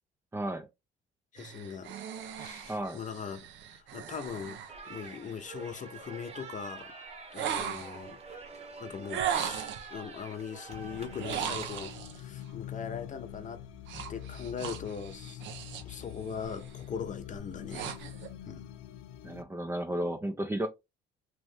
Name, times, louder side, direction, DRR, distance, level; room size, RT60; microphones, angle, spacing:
voice 1, 0.3-0.7 2.7-3.0 19.2-20.7, right 1 dB, 10° right, 0.5 m, -33 dB
voice 2, 1.3-1.9 2.3-6.9 7.3-8.2 8.8-13.6 14.1-15.4 15.8-18.0 18.4-18.7, left 6 dB, 40° left, 0.8 m, -40 dB
sound 1, 1.4-5.6 7.3-8.1 9.1-9.9 11.1-12.2 13.9-16.0 16.3-16.7 17.3-18.3, right 9 dB, 70° right, 0.7 m, -38 dB
sound 2, 4.7-12.0, right 4 dB, 35° right, 1.1 m, -47 dB
sound 3, 10.7-19.4, left 11 dB, 85° left, 0.4 m, -45 dB
3.0 x 2.6 x 3.3 m
supercardioid pair, 75°, 20 cm